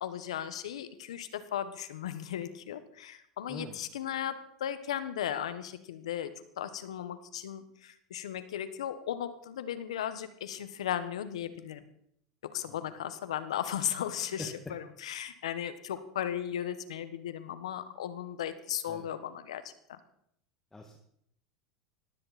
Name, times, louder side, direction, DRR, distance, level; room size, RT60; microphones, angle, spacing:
voice 1, 0.0-4.3 4.6-6.3 6.6-11.8 12.5-19.6 19.9-20.0, left 10 dB, 85° left, 12 dB, 1.4 m, -36 dB
voice 2, 3.5-3.8 12.7-12.9 14.4-14.8 18.9-19.1 20.7-21.0, left 2 dB, 15° left, 3 dB, 2.2 m, -44 dB
20.5 x 15.0 x 4.3 m, 0.73 s
hypercardioid pair, 95°, 3 cm